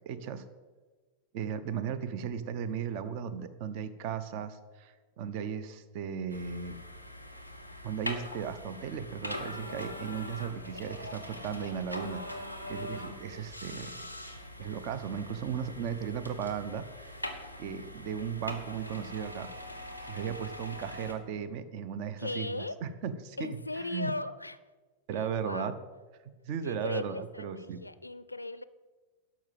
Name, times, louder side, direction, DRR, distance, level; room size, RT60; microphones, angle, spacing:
voice 1, 0.1-0.4 1.3-6.8 7.8-12.2 12.7-14.1 14.6-17.1 17.6-19.5 20.0-22.5 22.8-24.1 25.1-25.7 26.4-27.8, right 7 dB, 45° right, 13 dB, 0.7 m, -36 dB
sound 1, 6.3-21.1, left 1 dB, 90° right, 1.2 m, -42 dB
voice 2, 22.2-22.8 23.4-24.6 25.1-25.7 26.6-28.6, left 2 dB, 85° left, 15 dB, 0.4 m, -38 dB
12.0 x 5.9 x 7.3 m, 1.3 s
figure-of-eight pair, 90°, 0 cm